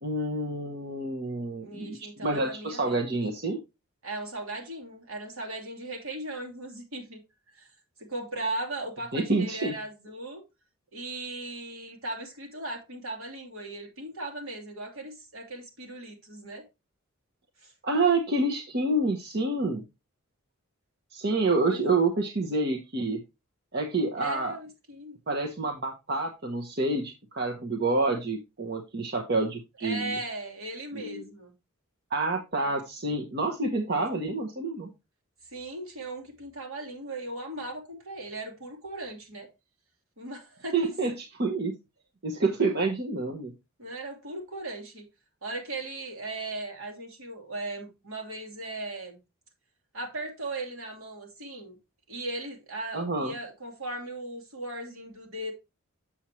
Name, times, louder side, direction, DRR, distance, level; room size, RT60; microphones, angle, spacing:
voice 1, 0.0-2.0 2.2-3.6 9.1-9.7 17.8-19.8 21.1-23.2 23.7-24.6 25.3-30.2 30.9-31.3 32.1-34.9 40.7-41.7 42.2-43.5 52.9-53.3, right 2 dB, 50° right, 1.0 m, -28 dB
voice 2, 1.6-3.0 4.0-7.2 7.5-7.7 8.0-10.4 10.9-16.6 17.6-17.7 21.7-21.8 24.2-25.2 29.8-31.5 33.9-34.2 35.4-39.5 40.2-40.8 43.8-45.0 45.4-49.2 49.9-51.8 52.1-55.5, right 2 dB, 70° right, 2.6 m, -38 dB
7.3 x 7.0 x 3.1 m
head